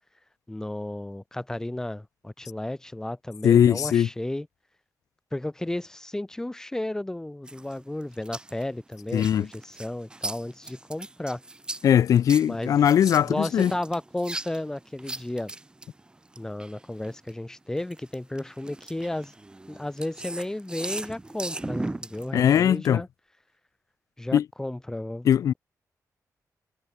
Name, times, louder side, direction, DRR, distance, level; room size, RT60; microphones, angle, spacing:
voice 1, 0.5-4.5 5.3-11.4 12.4-12.8 13.2-15.5 16.4-19.3 19.7-23.1 24.2-25.3, left 1 dB, 10° left, 6.9 m, -33 dB
voice 2, 3.4-4.1 9.1-9.5 11.8-13.7 22.3-23.0 24.3-24.4 25.2-25.5, left 9 dB, 65° left, 0.4 m, -20 dB
sound 1, 7.5-17.3 17.8-22.8, right 2 dB, 15° right, 2.8 m, -38 dB
wide cardioid pair, 160°, 6 cm